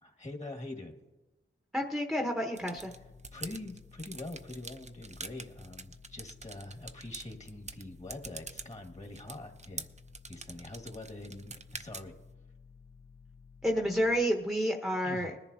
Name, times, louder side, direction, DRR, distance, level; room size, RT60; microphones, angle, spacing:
voice 1, 0.0-1.0 3.3-9.9 10.3-12.1 15.0-15.4, left 2 dB, 30° left, 3 dB, 1.8 m, -44 dB
voice 2, 1.7-2.9 13.6-15.3, equal, ahead, 1 dB, 1.0 m, -30 dB
sound 1, 2.6-12.3, right 3 dB, 35° right, 0.6 m, -47 dB
sound 2, 2.8-14.2, left 5 dB, 75° left, 1.0 m, -55 dB
20.5 x 10.5 x 2.8 m, 1.1 s
wide cardioid pair, 65°, 21 cm